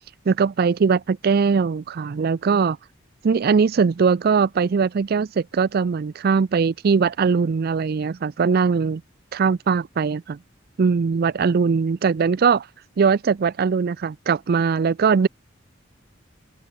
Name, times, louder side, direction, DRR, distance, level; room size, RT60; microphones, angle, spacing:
voice 1, 0.3-2.8 3.2-9.0 9.3-10.4 10.8-12.7 13.0-15.3, right 5 dB, 50° right, 0.4 m, -20 dB
open air
head